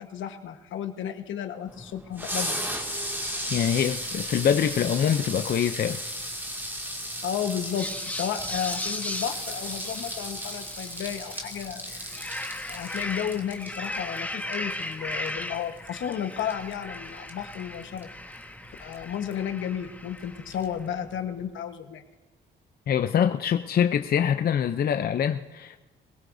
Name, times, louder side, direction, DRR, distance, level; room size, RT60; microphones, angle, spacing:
voice 1, 0.0-2.6 7.2-12.2 12.7-18.1 18.8-22.0, left 9 dB, 75° left, 1.3 m, -33 dB
sound 1, 1.7-21.5, equal, 10° right, 2.3 m, -36 dB
voice 2, 3.5-6.0 22.9-25.8, left 8 dB, 50° left, 0.6 m, -24 dB
sound 2, 7.7-11.6 12.0-20.7, left 1 dB, 10° left, 1.2 m, -37 dB
22.0 x 16.5 x 2.7 m
cardioid pair, 90°, 20 cm